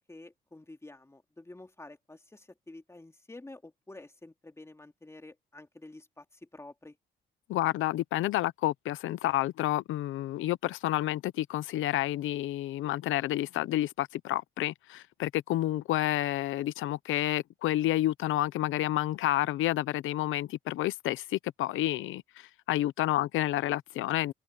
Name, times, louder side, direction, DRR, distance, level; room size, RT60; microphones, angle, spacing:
voice 1, 0.0-7.0, left 2 dB, 15° left, 2.8 m, -49 dB
voice 2, 7.5-24.3, left 14 dB, 85° left, 0.8 m, -30 dB
open air
cardioid pair, 90°, 20 cm